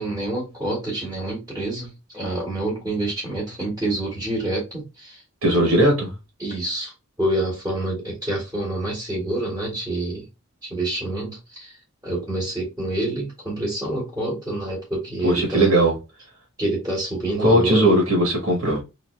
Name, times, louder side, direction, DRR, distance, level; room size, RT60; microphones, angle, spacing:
voice 1, 0.0-5.2 6.4-6.9 7.2-10.3 10.6-11.7 12.0-15.7 16.6-17.9, right 2 dB, 10° right, 2.0 m, -27 dB
voice 2, 5.4-6.1 15.2-15.9 17.4-18.8, right 1 dB, 70° right, 1.7 m, -18 dB
3.9 x 2.8 x 3.3 m
head